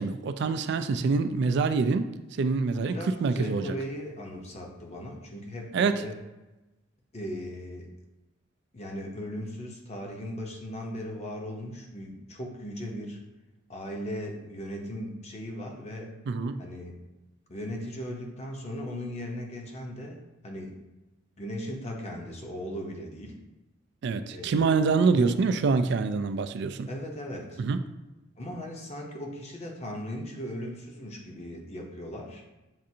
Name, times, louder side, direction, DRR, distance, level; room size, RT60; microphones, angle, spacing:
voice 1, 0.0-3.7 5.7-6.0 16.3-16.6 24.0-26.9 27.6-27.8, right 4 dB, 60° right, 10 dB, 0.3 m, -26 dB
voice 2, 2.7-6.2 7.1-7.9 8.7-13.2 13.7-16.2 16.6-17.0 17.5-20.8 21.4-23.4 24.3-25.4 26.9-27.6 28.4-32.4, equal, 35° left, 0 dB, 0.7 m, -38 dB
7.4 x 2.5 x 2.7 m, 1.0 s
head